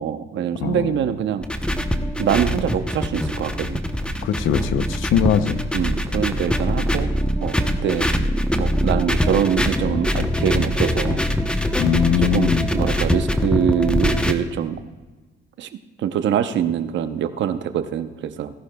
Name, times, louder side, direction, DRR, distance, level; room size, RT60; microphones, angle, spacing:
voice 1, 0.0-1.5 2.2-3.8 5.7-7.1 7.4-8.1 8.6-11.2 12.2-14.8 15.6-15.7 16.0-18.5, right 9 dB, 70° right, 10 dB, 0.8 m, -24 dB
voice 2, 0.6-1.1 4.2-5.6 11.8-12.7, left 8 dB, 85° left, 12 dB, 0.7 m, -21 dB
sound 1, 1.4-14.3, equal, 5° left, 0.8 m, -23 dB
17.0 x 11.0 x 2.3 m, 1.2 s
cardioid pair, 90°, 20 cm